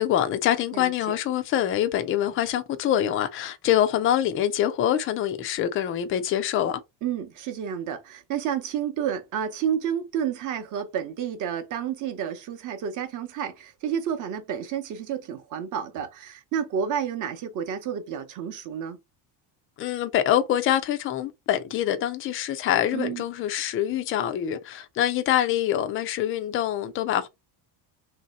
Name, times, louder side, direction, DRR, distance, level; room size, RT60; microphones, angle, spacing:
voice 1, 0.0-6.8 19.8-27.3, left 11 dB, 30° left, 0.4 m, -25 dB
voice 2, 0.7-1.2 7.0-19.0 22.9-23.2, right 8 dB, 40° right, 0.8 m, -30 dB
3.2 x 2.8 x 4.0 m
cardioid pair, 170°, 47 cm